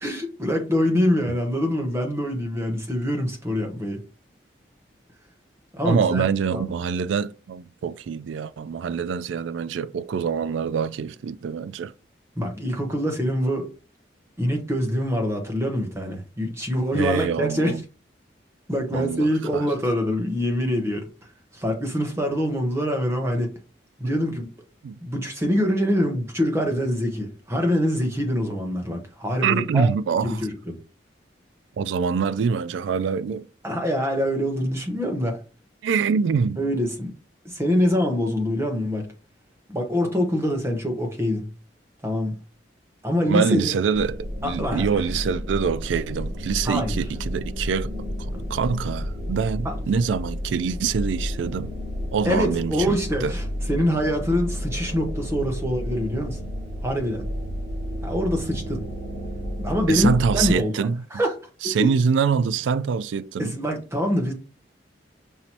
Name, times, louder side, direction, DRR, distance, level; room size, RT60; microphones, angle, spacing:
voice 1, 0.0-4.0 5.7-6.6 12.4-13.7 14.4-17.7 18.7-21.1 21.5-23.5 24.0-24.5 25.0-29.9 30.3-30.7 33.6-35.4 36.6-37.1 37.4-39.1 39.7-41.5 42.0-42.4 43.0-43.7 44.4-44.8 46.6-47.0 49.6-49.8 52.2-53.4 53.7-56.4 56.8-57.3 58.0-58.8 59.6-60.9 61.1-61.3 61.6-61.9 63.4-64.3, equal, 15° right, 0.9 m, -24 dB
voice 2, 5.8-11.9 16.9-17.8 18.9-19.7 24.0-24.1 24.8-24.9 29.4-30.4 31.8-33.5 35.8-36.6 43.2-47.9 48.5-51.7 52.1-53.3 59.9-61.0 61.6-63.6, right 6 dB, 90° right, 0.3 m, -25 dB
sound 1, 43.9-60.5, equal, 70° right, 2.2 m, -31 dB
5.6 x 3.0 x 2.8 m
head